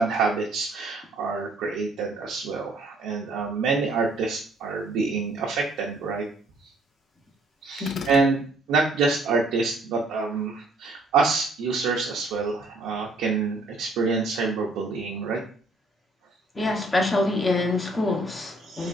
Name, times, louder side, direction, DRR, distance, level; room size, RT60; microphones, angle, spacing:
voice 1, 0.0-6.2 7.6-15.4 18.7-18.9, right 4 dB, 90° right, 0.7 m, -26 dB
sound 1, 7.8-8.3, left 6 dB, 60° left, 0.4 m, -36 dB
voice 2, 16.5-18.9, left 2 dB, 25° left, 1.0 m, -25 dB
4.1 x 3.2 x 2.6 m
cardioid pair, 90°, 0 cm